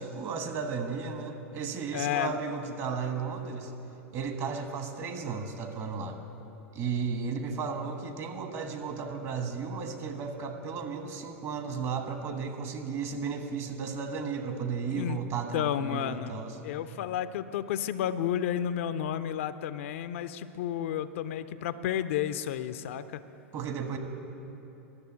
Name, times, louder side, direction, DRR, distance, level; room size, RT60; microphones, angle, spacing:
voice 1, 0.0-3.7 4.1-6.2 6.7-16.6 23.5-24.0, right 5 dB, 40° right, 6 dB, 1.3 m, -34 dB
voice 2, 1.9-2.4 14.9-15.2 15.5-16.4 16.6-23.2, left 10 dB, 65° left, 13 dB, 0.4 m, -31 dB
11.5 x 6.8 x 8.0 m, 3.0 s
hypercardioid pair, 95°, 7 cm